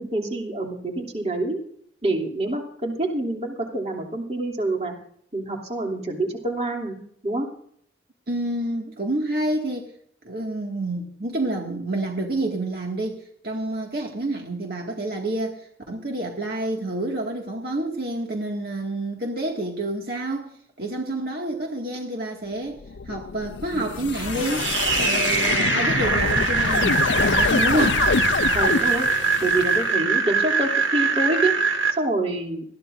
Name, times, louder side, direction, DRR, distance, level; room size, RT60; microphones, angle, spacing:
voice 1, 0.0-1.6 2.0-4.9 5.3-7.5 28.5-29.1 29.4-31.5 32.0-32.6, right 2 dB, 35° right, 0 dB, 2.9 m, -26 dB
voice 2, 8.3-9.9 10.2-28.0, right 1 dB, 55° right, 0 dB, 2.0 m, -28 dB
sound 1, 22.8-29.9, left 5 dB, 80° left, 0.5 m, -26 dB
sound 2, 24.2-31.9, right 5 dB, 85° right, 2.0 m, -23 dB
21.0 x 14.5 x 2.6 m, 0.64 s
head